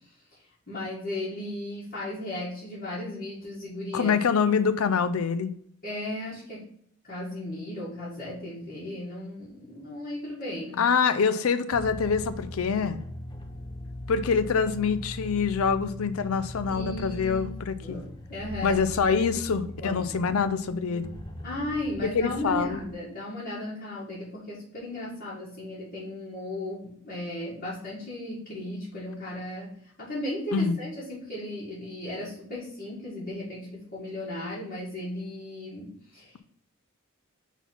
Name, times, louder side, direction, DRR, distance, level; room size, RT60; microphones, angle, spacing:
voice 1, 0.7-4.1 5.8-6.7 7.1-10.8 16.7-17.6 17.8-18.8 19.1-19.2 19.8-20.3 21.4-29.7 30.0-36.4, left 1 dB, 45° left, -10 dB, 1.9 m, -36 dB
voice 2, 3.9-5.5 10.8-13.0 14.1-18.0 18.6-21.1 22.0-22.9 30.5-30.8, left 5 dB, 85° left, 12 dB, 0.5 m, -25 dB
sound 1, 11.7-22.9, left 1 dB, 20° left, 0.6 m, -40 dB
4.5 x 4.0 x 5.3 m, 0.65 s
head